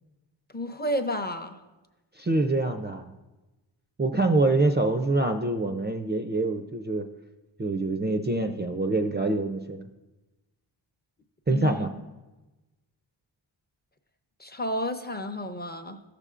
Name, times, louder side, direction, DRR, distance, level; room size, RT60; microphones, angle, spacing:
voice 1, 0.5-1.6 11.5-11.9 14.4-16.0, left 1 dB, 20° left, 7 dB, 0.6 m, -31 dB
voice 2, 2.2-3.1 4.0-7.1 7.6-9.9 11.5-11.9, right 2 dB, 25° right, 6 dB, 0.4 m, -25 dB
13.5 x 6.7 x 2.5 m, 1.1 s
wide cardioid pair, 65°, 46 cm